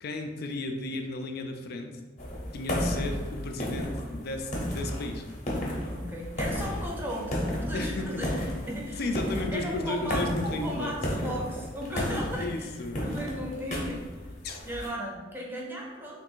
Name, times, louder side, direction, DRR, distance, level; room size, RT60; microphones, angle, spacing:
voice 1, 0.0-1.9 2.5-5.2 7.7-8.4 9.0-10.9 11.9-13.1 14.4-14.6, left 2 dB, 55° left, 5 dB, 0.4 m, -34 dB
sound 1, 2.2-14.9, equal, 40° left, 0.8 m, -33 dB
voice 2, 6.0-12.7 13.0-14.0 14.7-16.2, equal, 10° right, -2 dB, 0.6 m, -36 dB
3.2 x 2.5 x 4.4 m, 1.2 s
head